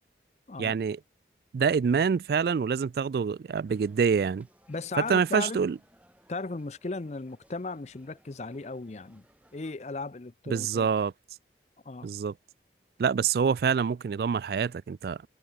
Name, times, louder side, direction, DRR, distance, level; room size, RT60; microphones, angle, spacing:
voice 1, 0.6-1.0 1.5-4.5 5.0-5.8 10.5-11.1 12.0-12.3 13.0-15.2, right 6 dB, 55° right, 0.3 m, -26 dB
sound 1, 3.7-9.7, right 1 dB, 10° right, 6.3 m, -63 dB
voice 2, 4.7-5.6 6.3-9.2 9.5-10.9 11.9-12.1, left 3 dB, 40° left, 0.6 m, -36 dB
head